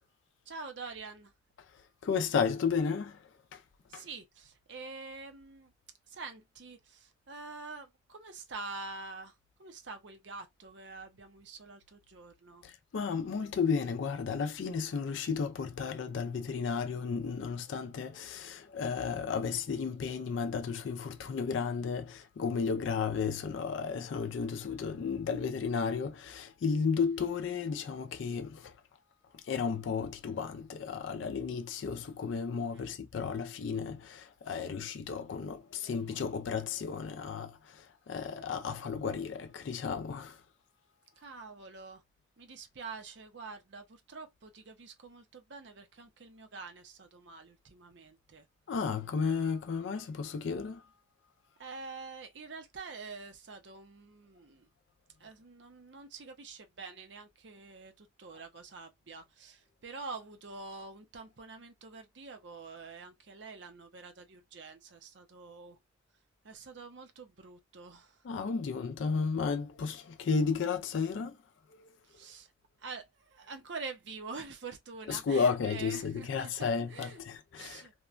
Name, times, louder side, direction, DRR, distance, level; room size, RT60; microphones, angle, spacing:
voice 1, 0.5-1.3 3.9-5.7 6.1-12.6 32.7-32.9 41.2-42.0 42.4-48.5 51.6-54.7 55.2-65.8 66.4-68.2 72.0-72.5 72.8-77.2 77.6-77.9, right 4 dB, 65° right, 0.6 m, -46 dB
voice 2, 1.7-3.6 3.9-4.0 12.6-28.8 29.3-40.4 48.7-50.9 68.2-71.4 71.7-71.9 75.1-77.9, left 5 dB, 70° left, 0.4 m, -33 dB
2.9 x 2.1 x 2.4 m
head